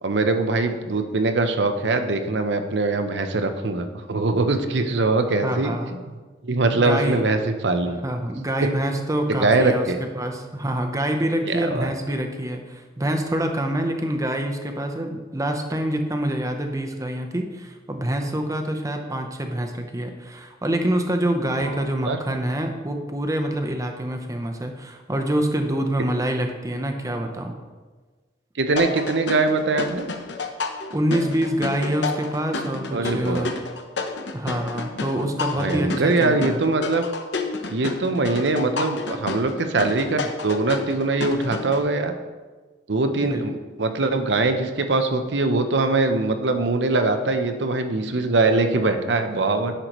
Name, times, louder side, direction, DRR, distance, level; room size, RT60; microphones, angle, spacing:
voice 1, 0.0-6.2 6.4-8.0 8.6-8.7 9.3-10.0 11.5-11.9 21.6-22.2 28.6-30.1 32.9-33.5 35.5-37.0 37.7-42.1 42.9-49.7, right 3 dB, 90° right, 7 dB, 0.7 m, -22 dB
voice 2, 5.4-5.9 6.8-7.2 8.0-27.5 30.9-33.5 34.3-36.6 43.2-43.4, right 1 dB, 20° right, 5 dB, 0.8 m, -26 dB
sound 1, 28.8-41.8, left 3 dB, 80° left, 0.8 m, -30 dB
10.0 x 6.6 x 3.0 m, 1.3 s
head